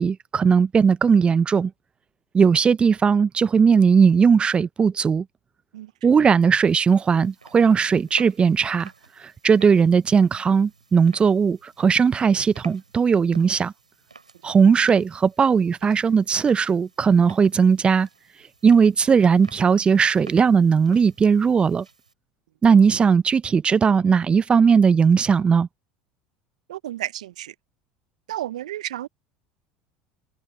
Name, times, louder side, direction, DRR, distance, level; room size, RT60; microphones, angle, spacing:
voice 1, 0.0-1.7 2.3-5.2 6.0-8.9 9.4-13.7 14.4-18.1 18.6-21.8 22.6-25.7, right 6 dB, 25° right, 1.0 m, -18 dB
voice 2, 5.7-6.3 14.4-14.5 26.7-27.5 28.3-29.1, right 13 dB, 75° right, 1.1 m, -33 dB
sound 1, 6.6-22.1, right 4 dB, 90° right, 6.2 m, -51 dB
figure-of-eight pair, 70°, 4 cm